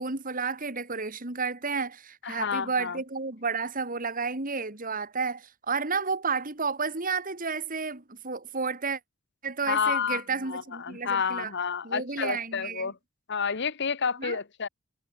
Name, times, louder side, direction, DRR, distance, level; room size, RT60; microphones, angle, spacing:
voice 1, 0.0-9.0 9.4-11.5 11.8-12.9 14.2-14.4, right 4 dB, 45° right, 2.7 m, -31 dB
voice 2, 2.2-3.0 9.7-10.2 10.5-13.0 13.3-14.7, left 6 dB, 60° left, 1.2 m, -29 dB
head